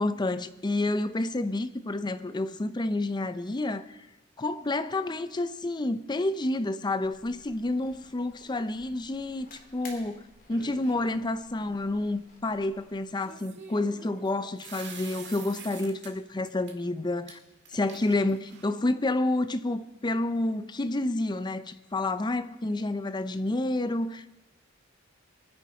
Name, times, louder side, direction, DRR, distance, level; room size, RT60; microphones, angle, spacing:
voice 1, 0.0-3.9 4.4-17.4 17.7-24.4, left 2 dB, 20° left, 0.5 m, -29 dB
sound 1, 7.0-13.0, left 2 dB, 45° left, 2.9 m, -54 dB
sound 2, 10.5-11.2 13.2-16.1 16.5-16.7 17.3-17.4 17.6-18.8, right 5 dB, 60° right, 1.8 m, -46 dB
23.0 x 10.0 x 4.2 m
head